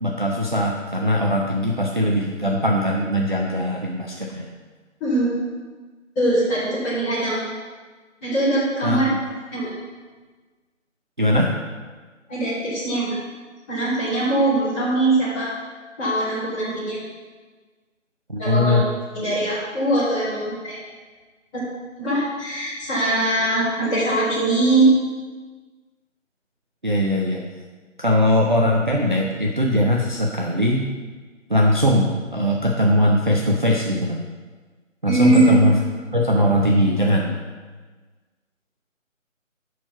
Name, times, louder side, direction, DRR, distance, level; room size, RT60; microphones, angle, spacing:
voice 1, 0.0-4.4 8.8-9.2 11.2-11.5 18.3-18.8 26.8-27.4 28.0-30.9 31.5-34.2 35.0-35.7 36.1-37.3, left 1 dB, 40° right, -1 dB, 0.4 m, -20 dB
voice 2, 6.2-7.4 8.2-9.1 9.5-9.7 12.3-13.2 13.7-15.5 16.0-17.0 18.4-18.8 19.1-20.8 21.5-21.6 22.0-24.9 35.1-35.5, right 2 dB, 10° left, -14 dB, 1.8 m, -21 dB
6.0 x 4.5 x 5.6 m, 1.4 s
figure-of-eight pair, 160°, 39 cm